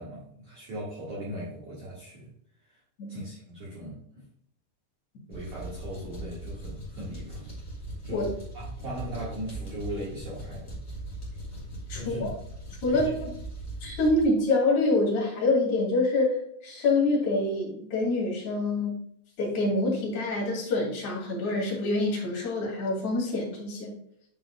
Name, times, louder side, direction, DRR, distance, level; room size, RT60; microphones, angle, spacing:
voice 1, 0.0-2.3 3.1-4.0 5.3-7.5 8.0-8.3 8.5-10.8 11.9-12.3 12.9-13.1, right 1 dB, 55° right, -7 dB, 2.2 m, -38 dB
sound 1, 5.3-14.2, right 1 dB, 15° left, 1.7 m, -40 dB
voice 2, 11.9-12.3 12.8-13.3 13.8-19.0 19.4-23.9, left 2 dB, 40° left, -4 dB, 3.2 m, -26 dB
10.5 x 5.3 x 2.3 m, 0.70 s
omnidirectional pair, 5.8 m